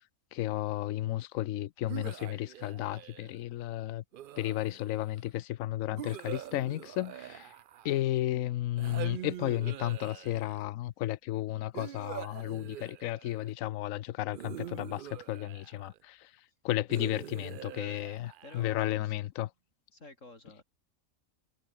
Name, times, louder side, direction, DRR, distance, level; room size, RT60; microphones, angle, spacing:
voice 1, 0.3-4.0 4.4-7.5 7.8-16.3 16.6-19.5, left 14 dB, 85° left, 1.0 m, -33 dB
sound 1, 1.9-3.4 4.1-5.1 6.0-8.2 8.8-10.6 11.7-13.5 14.3-16.0 16.9-18.9, right 11 dB, 65° right, 0.5 m, -44 dB
voice 2, 18.4-19.1 19.9-20.6, left 2 dB, 70° left, 4.7 m, -51 dB
omnidirectional pair, 1.4 m